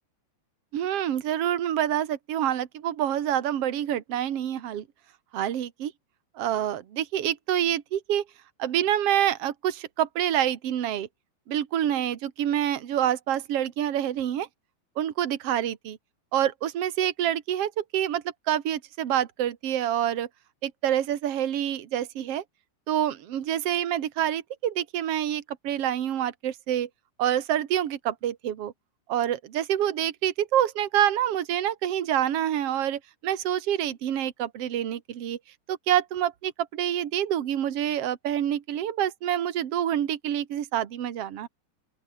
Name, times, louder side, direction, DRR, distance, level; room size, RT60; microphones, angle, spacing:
voice 1, 0.7-4.8 5.3-5.9 6.3-8.2 8.6-11.1 11.5-14.5 15.0-16.0 16.3-20.3 20.6-22.4 22.9-26.9 27.2-28.7 29.1-35.4 35.7-41.5, right 11 dB, 75° right, 1.4 m, -27 dB
open air
omnidirectional pair, 5.2 m